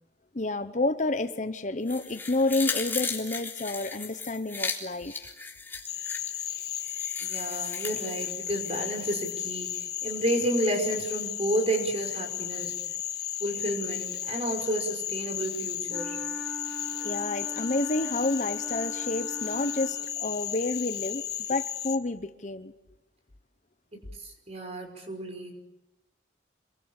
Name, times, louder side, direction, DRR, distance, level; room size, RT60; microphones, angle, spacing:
voice 1, 0.3-5.2 17.0-22.7, left 2 dB, 40° left, 1.0 m, -29 dB
sound 1, 1.9-9.3 9.7-9.8, left 4 dB, 10° left, 3.8 m, -37 dB
Cricket / Frog, 5.9-22.0, left 11 dB, 55° left, 1.7 m, -34 dB
voice 2, 7.2-12.8 13.4-16.2 23.9-25.5, right 1 dB, 35° right, 5.7 m, -31 dB
Wind instrument woodwind instrument, 15.8-20.4, equal, 5° right, 3.7 m, -41 dB
27.5 x 23.0 x 8.9 m
head